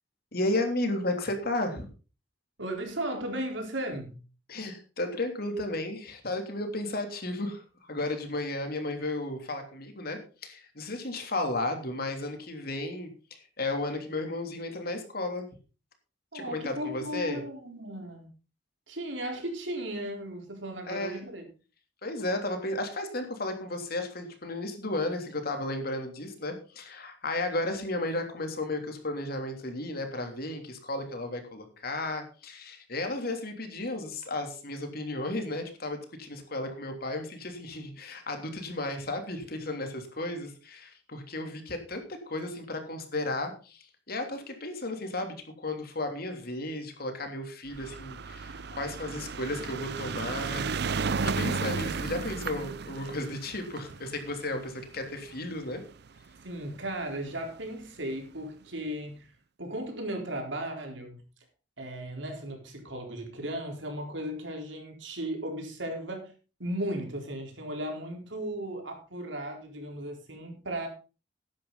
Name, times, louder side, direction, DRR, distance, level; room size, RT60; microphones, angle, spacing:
voice 1, 0.3-1.9 4.5-15.5 16.3-17.4 20.9-21.2 22.0-55.8, left 2 dB, 55° left, 5 dB, 3.2 m, -34 dB
voice 2, 2.6-4.2 16.3-18.3 18.9-21.4 56.4-59.3 59.6-61.2 61.8-66.3 66.6-70.9, right 1 dB, 85° right, 3 dB, 4.2 m, -36 dB
sound 1, 47.7-56.2 57.0-57.1 57.3-57.4 57.7-57.8, right 5 dB, 60° right, 0.6 m, -34 dB
14.0 x 10.5 x 4.1 m, 0.34 s
head